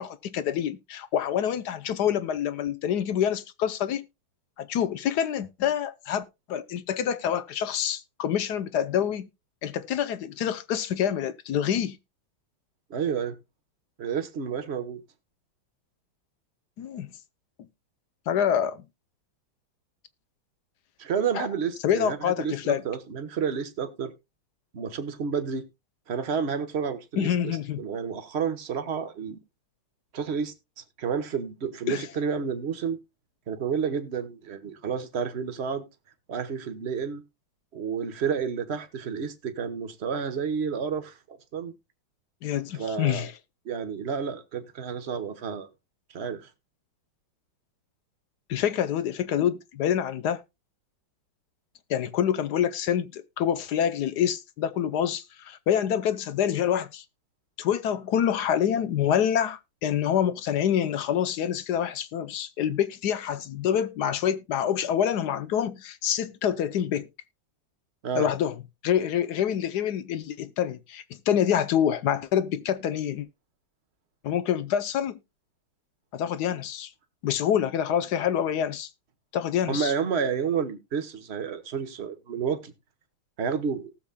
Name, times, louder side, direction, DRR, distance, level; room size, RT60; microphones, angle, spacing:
voice 1, 0.0-4.1 4.6-9.3 9.6-12.0 16.8-17.1 18.3-18.8 21.3-21.5 21.8-22.8 27.2-27.8 31.9-32.1 42.4-43.3 48.5-50.4 51.9-57.0 57.6-67.1 68.1-68.6 68.8-73.3 74.2-75.2 76.1-76.9 77.2-78.9 79.3-79.9, left 9 dB, 65° left, 1.1 m, -26 dB
voice 2, 12.9-13.4 14.0-15.0 21.0-24.1 24.7-25.6 26.1-29.4 30.1-30.5 31.0-33.0 33.5-35.8 36.3-37.2 37.7-41.7 42.7-43.3 43.6-45.7 46.1-46.5 68.0-68.3 79.7-82.7 83.4-83.9, right 6 dB, 40° right, 1.2 m, -30 dB
18.5 x 7.0 x 2.2 m
omnidirectional pair, 2.1 m